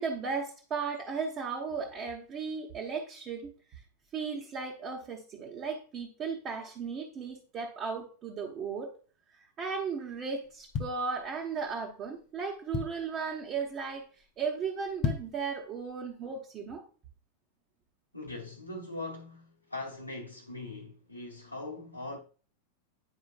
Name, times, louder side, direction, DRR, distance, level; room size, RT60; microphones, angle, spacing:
voice 1, 0.0-3.8 4.1-8.9 9.3-14.1 14.4-16.8, right 5 dB, 30° right, 1.2 m, -36 dB
sound 1, 10.4-11.7 12.2-12.3 12.5-13.2 13.7-13.9 14.2-14.3 14.8-15.5 15.9-16.0, left 6 dB, 40° left, 0.7 m, -34 dB
voice 2, 18.1-22.2, left 2 dB, 85° left, 1.0 m, -41 dB
10.0 x 4.9 x 2.5 m
figure-of-eight pair, 90°, 0 cm